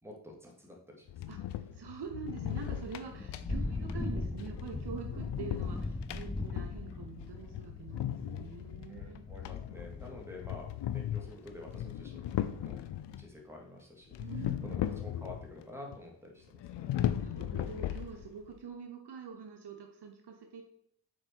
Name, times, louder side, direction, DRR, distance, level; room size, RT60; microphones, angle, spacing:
voice 1, 0.0-1.0 8.9-12.8 13.2-14.1 14.6-16.9, left 2 dB, 5° right, -1 dB, 2.3 m, -49 dB
sound 1, 1.1-13.3 14.1-15.6 15.9-16.0 16.5-18.5, left 11 dB, 70° left, 0.6 m, -38 dB
voice 2, 1.3-9.3 14.2-14.9 16.9-20.6, right 6 dB, 60° right, 3 dB, 1.0 m, -45 dB
Thunder / Rain, 2.7-12.1, left 2 dB, 10° left, 0.5 m, -40 dB
6.4 x 4.4 x 4.6 m, 0.71 s
supercardioid pair, 50°, 44 cm